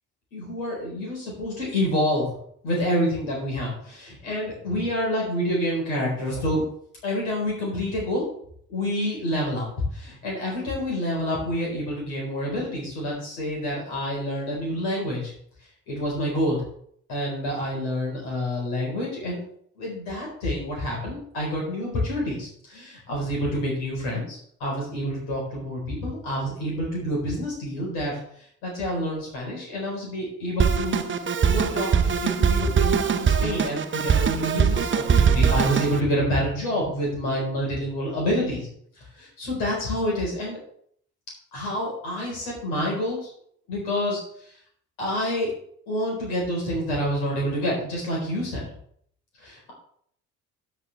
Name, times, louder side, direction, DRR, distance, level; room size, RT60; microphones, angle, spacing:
voice 1, 0.3-2.4 2.6-6.6 7.0-8.3 8.7-9.7 9.9-15.3 15.9-16.6 17.1-19.4 19.8-28.2 28.6-31.0 31.5-38.7 39.2-40.6 41.5-43.3 43.7-44.2 45.0-45.5 45.9-48.7 49.4-49.7, equal, 75° left, -3 dB, 4.4 m, -28 dB
Drum kit, 30.6-36.0, right 6 dB, 30° right, 0.8 m, -22 dB
12.5 x 6.0 x 3.4 m, 0.64 s
hypercardioid pair, 50°, 39 cm